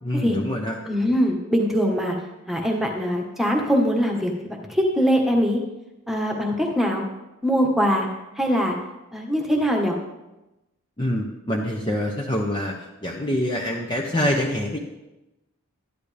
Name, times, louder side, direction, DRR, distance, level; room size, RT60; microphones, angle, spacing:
voice 1, 0.0-0.8 11.0-12.7 13.0-14.8, left 1 dB, 20° left, -1 dB, 0.8 m, -25 dB
voice 2, 0.9-2.1 2.5-4.3 4.7-5.6 6.1-7.0 7.4-8.1 8.4-8.7 9.1-10.0, equal, ahead, 1 dB, 1.3 m, -22 dB
12.5 x 10.5 x 3.4 m, 0.99 s
head